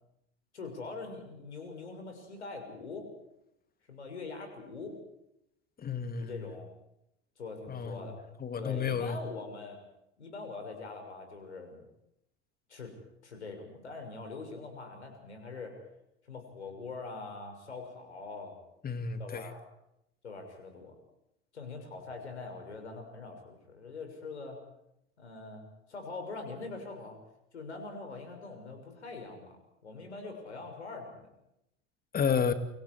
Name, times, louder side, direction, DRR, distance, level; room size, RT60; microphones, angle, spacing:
voice 1, 0.5-3.1 3.9-5.0 6.2-6.7 7.4-8.2 8.6-9.8 10.2-11.8 12.7-12.9 13.2-15.7 16.3-18.5 19.2-19.6 20.2-20.9 21.5-24.6 25.2-27.2 27.5-29.6 29.8-31.3, left 3 dB, 75° left, 5 dB, 6.4 m, -43 dB
voice 2, 5.8-6.5 7.7-8.1 8.4-9.2 18.8-19.5 32.1-32.5, left 6 dB, 25° left, 10 dB, 2.7 m, -31 dB
29.5 x 25.5 x 4.8 m, 0.83 s
figure-of-eight pair, 75°, 34 cm